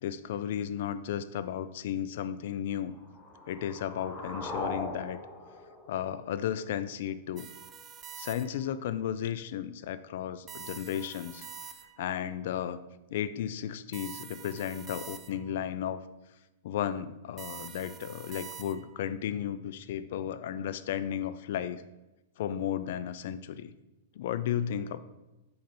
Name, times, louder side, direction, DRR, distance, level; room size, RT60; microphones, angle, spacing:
voice 1, 0.0-3.0 3.5-5.2 5.9-7.5 8.2-11.5 12.0-12.8 13.1-16.0 16.6-21.8 22.4-23.7 24.2-25.0, left 10 dB, 65° left, 13 dB, 0.4 m, -34 dB
sound 1, 2.9-6.9, left 2 dB, 10° left, 1.1 m, -40 dB
sound 2, 7.4-8.8 10.5-12.1 13.9-15.6 17.4-19.1, right 7 dB, 25° right, 0.4 m, -46 dB
6.3 x 4.0 x 4.4 m, 1.0 s
hypercardioid pair, 130°, 0 cm